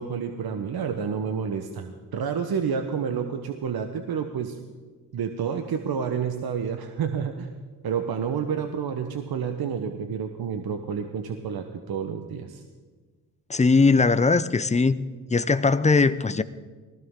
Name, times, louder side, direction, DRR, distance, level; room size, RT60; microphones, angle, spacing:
voice 1, 0.0-4.6 5.1-7.5 7.8-12.6, right 7 dB, 60° right, 6 dB, 1.1 m, -29 dB
voice 2, 13.5-15.0 15.3-16.4, left 4 dB, 15° left, 14 dB, 0.6 m, -20 dB
19.5 x 15.0 x 3.7 m, 1.4 s
supercardioid pair, 60°, 41 cm